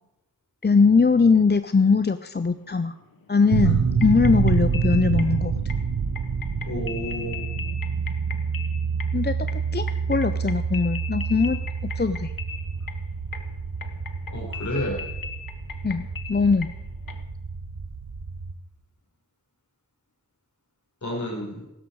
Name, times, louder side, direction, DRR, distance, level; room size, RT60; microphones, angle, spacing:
voice 1, 0.6-2.9 3.3-5.6 9.1-11.6 12.0-12.3 15.8-16.7, left 4 dB, 30° left, 11 dB, 0.5 m, -21 dB
sound 1, 2.5-3.3 3.6-9.2 9.5-16.8 17.1-17.2, left 7 dB, 75° left, 1.1 m, -39 dB
sound 2, 3.5-18.5, right 6 dB, 75° right, 1.1 m, -27 dB
voice 2, 6.7-7.5 14.3-15.0 21.0-21.7, left 1 dB, 55° left, -1 dB, 4.9 m, -30 dB
16.0 x 12.5 x 4.7 m, 0.98 s
wide cardioid pair, 65°, 35 cm